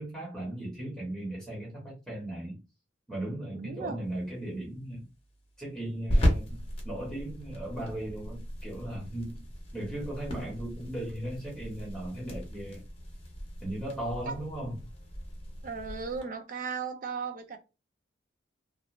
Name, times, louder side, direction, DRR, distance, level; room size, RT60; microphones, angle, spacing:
voice 1, 0.0-2.6 3.1-5.0 5.6-9.4 9.7-12.8 13.6-14.8, right 1 dB, 5° left, 1.0 m, -37 dB
voice 2, 3.5-4.2 14.3-14.4 15.6-17.6, right 5 dB, 45° right, 0.5 m, -36 dB
sound 1, 4.0-16.2, equal, 30° left, 0.8 m, -35 dB
2.5 x 2.0 x 3.1 m
head